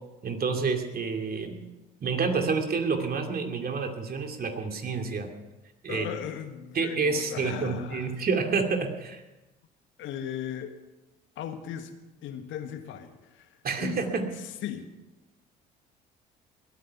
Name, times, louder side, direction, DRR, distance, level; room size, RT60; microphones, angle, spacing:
voice 1, 0.2-1.6 2.0-5.3 5.8-6.1 6.7-9.2 13.6-14.3, right 4 dB, 45° right, 4 dB, 2.6 m, -28 dB
voice 2, 5.9-8.1 10.0-10.7 11.3-11.9 12.2-14.2 14.6-14.9, left 9 dB, 65° left, 7 dB, 1.6 m, -37 dB
20.5 x 9.3 x 5.8 m, 1.0 s
hypercardioid pair, 60°, 21 cm